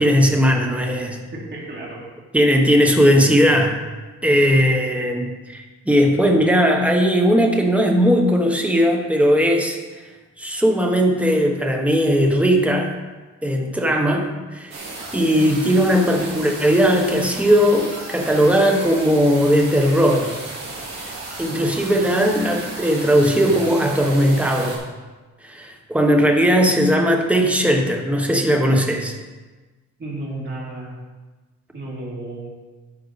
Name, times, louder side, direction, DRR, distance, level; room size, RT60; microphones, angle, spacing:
voice 1, 0.0-1.2 2.3-3.8 4.2-9.8 10.4-12.9 13.4-14.8 15.1-20.3 21.4-24.8 25.4-29.1, equal, 5° right, 1 dB, 1.1 m, -18 dB
voice 2, 1.3-2.0 30.0-30.9 31.7-32.5, right 2 dB, 40° right, -4 dB, 2.8 m, -32 dB
sound 1, 14.7-24.8, right 2 dB, 65° right, 2.7 m, -34 dB
11.5 x 6.6 x 4.1 m, 1.3 s
wide cardioid pair, 160°, 29 cm